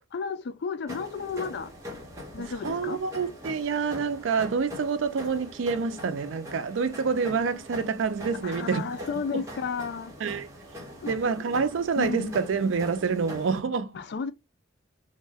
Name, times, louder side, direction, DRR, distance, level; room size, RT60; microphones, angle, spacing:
voice 1, 0.1-1.7 2.3-3.0 8.4-10.1 11.0-11.3 12.0-12.4 13.9-14.3, left 5 dB, 60° left, 0.4 m, -33 dB
sound 1, 0.9-13.6, left 1 dB, 15° right, 0.9 m, -42 dB
voice 2, 2.4-8.9 9.2-9.4 10.2-10.5 11.1-14.0, right 5 dB, 85° right, 0.4 m, -27 dB
2.6 x 2.1 x 3.3 m
head